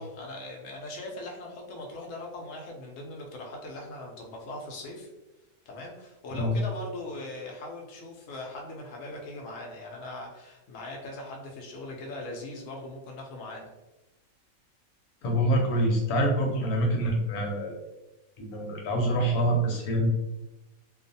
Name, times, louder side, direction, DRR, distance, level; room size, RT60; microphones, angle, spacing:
voice 1, 0.0-5.1 5.7-13.7, left 2 dB, 70° left, 0 dB, 0.9 m, -40 dB
voice 2, 15.2-17.8 18.4-20.1, right 1 dB, 90° left, 0 dB, 1.1 m, -26 dB
2.5 x 2.3 x 2.6 m, 1.0 s
omnidirectional pair, 1.5 m